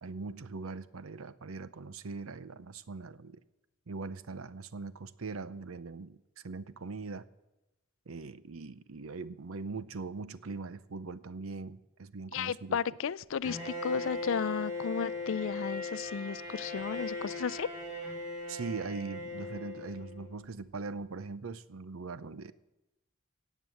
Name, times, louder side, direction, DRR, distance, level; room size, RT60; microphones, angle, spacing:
voice 1, 0.0-3.4 3.9-6.2 6.4-7.3 8.1-12.8 18.5-22.5, right 4 dB, 80° right, 16 dB, 0.7 m, -41 dB
voice 2, 12.3-17.7, left 6 dB, 65° left, 20 dB, 0.4 m, -34 dB
Bowed string instrument, 13.4-20.4, left 2 dB, 20° right, 5.6 m, -39 dB
16.5 x 8.4 x 7.6 m, 0.98 s
head